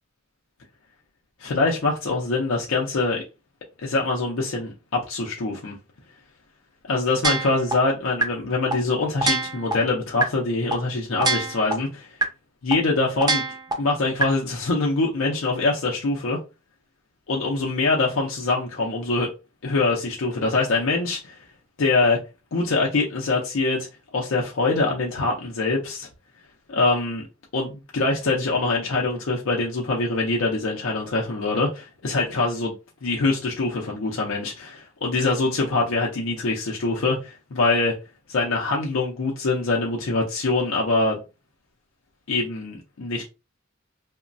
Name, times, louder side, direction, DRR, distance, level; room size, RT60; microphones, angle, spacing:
voice 1, 1.4-3.2 3.8-5.7 6.9-12.2 12.6-13.4 13.8-16.4 17.3-19.3 19.6-21.4 21.8-22.2 22.5-23.9 24.1-26.1 26.7-27.2 27.5-32.7 33.0-38.0 38.3-41.2 42.3-43.2, left 3 dB, 90° left, 0.6 m, -24 dB
sound 1, 7.2-7.7 8.2-8.3 8.7-8.8 9.2-9.7 10.2-10.3 10.7-10.8 11.2-11.7 12.2-12.3 12.7-12.8 13.2-13.7 14.2-14.3, right 3 dB, 20° right, 0.4 m, -23 dB
3.0 x 2.2 x 2.5 m
head